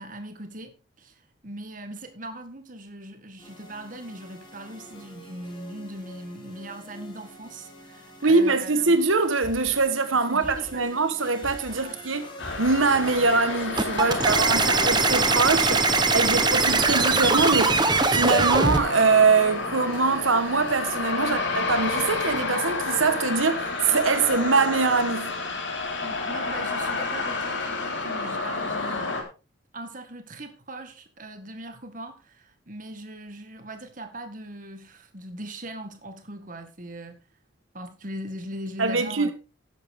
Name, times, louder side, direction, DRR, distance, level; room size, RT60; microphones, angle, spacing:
voice 1, 0.0-9.0 10.3-11.0 11.8-12.0 13.9-14.8 21.2-21.5 26.0-29.3 29.7-37.2 37.7-39.3, right 1 dB, 40° right, 1.9 m, -40 dB
sound 1, 3.4-20.9, left 1 dB, 25° left, 4.6 m, -44 dB
voice 2, 8.2-12.3 12.6-17.8 18.1-25.4 38.8-39.3, right 4 dB, 90° right, 1.3 m, -23 dB
sound 2, 12.4-29.2, left 3 dB, 70° left, 3.4 m, -30 dB
sound 3, 13.8-18.8, right 4 dB, 20° right, 0.9 m, -21 dB
13.0 x 10.5 x 3.6 m
head